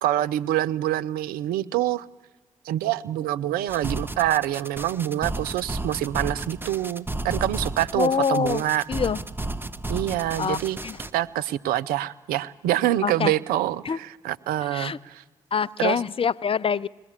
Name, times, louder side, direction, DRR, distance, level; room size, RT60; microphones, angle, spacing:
voice 1, 0.0-2.1 2.7-8.9 9.9-10.8 11.1-15.2 15.8-16.0, right 13 dB, 75° right, 16 dB, 0.6 m, -26 dB
sound 1, 3.7-11.1, right 2 dB, 15° right, 1.2 m, -33 dB
voice 2, 8.0-8.6 8.9-9.2 10.4-10.6 10.8-11.0 13.0-13.3 13.9-14.0 14.7-15.0 15.5-16.9, left 6 dB, 35° left, 20 dB, 0.5 m, -25 dB
21.0 x 17.5 x 7.4 m, 1.2 s
hypercardioid pair, 45°, 15 cm